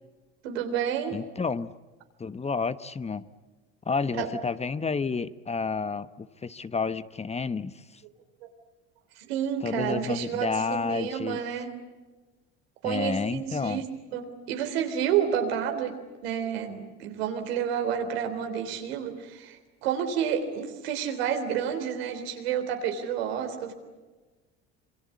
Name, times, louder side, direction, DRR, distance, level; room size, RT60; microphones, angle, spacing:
voice 1, 0.4-1.2 4.2-4.3 9.2-11.7 12.8-13.8 14.1-16.0 16.2-23.7, right 8 dB, 85° right, 6 dB, 3.7 m, -30 dB
voice 2, 1.1-1.7 2.2-3.3 3.9-8.0 9.6-11.4 12.8-13.8, left 4 dB, 20° left, 14 dB, 1.0 m, -30 dB
27.0 x 24.0 x 8.4 m, 1.2 s
supercardioid pair, 80°, 30 cm